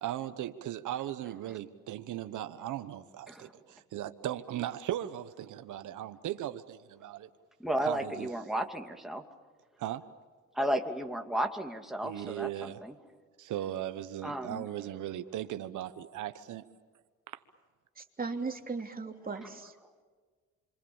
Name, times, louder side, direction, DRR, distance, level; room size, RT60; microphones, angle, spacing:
voice 1, 0.0-7.3 7.8-8.3 9.8-10.0 12.0-12.8 13.4-16.6 17.3-17.4, right 12 dB, 80° right, 1.1 m, -38 dB
voice 2, 7.6-9.2 10.5-13.0 14.2-14.7, right 1 dB, ahead, 2.6 m, -33 dB
voice 3, 18.0-19.8, right 4 dB, 30° right, 3.1 m, -37 dB
28.5 x 24.5 x 7.2 m
cardioid pair, 90°, 30 cm